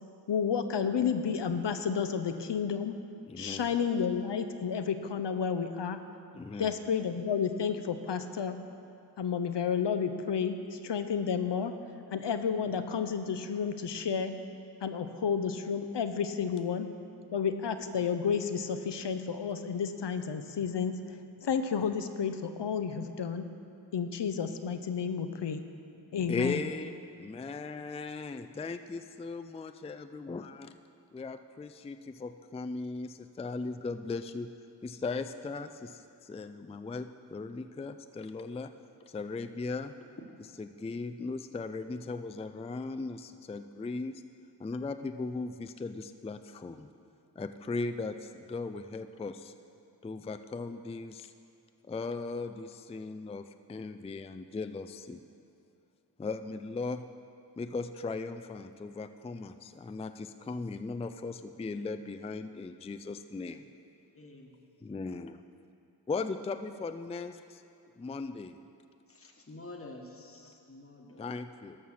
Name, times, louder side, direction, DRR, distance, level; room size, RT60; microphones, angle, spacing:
voice 1, 0.3-2.9 3.4-6.0 6.6-8.6 9.2-11.7 12.1-14.3 14.8-16.9 17.3-21.0 21.4-23.4 23.9-25.6 26.1-26.6, left 6 dB, 80° left, 9 dB, 0.7 m, -31 dB
voice 2, 3.3-3.7 6.3-6.7 26.3-26.9 27.2-30.7 31.1-34.5 34.8-38.7 39.1-39.9 40.6-44.2 44.6-46.9 47.4-49.5 50.0-51.3 51.9-55.2 56.2-57.0 57.6-63.7 64.8-65.4 66.1-67.6 68.0-68.6 71.2-71.8, left 3 dB, 15° left, 9 dB, 0.3 m, -38 dB
voice 3, 64.1-64.5 69.1-71.3, left 2 dB, 30° left, 1 dB, 1.2 m, -48 dB
12.5 x 5.7 x 6.4 m, 2.5 s
wide cardioid pair, 45°, 42 cm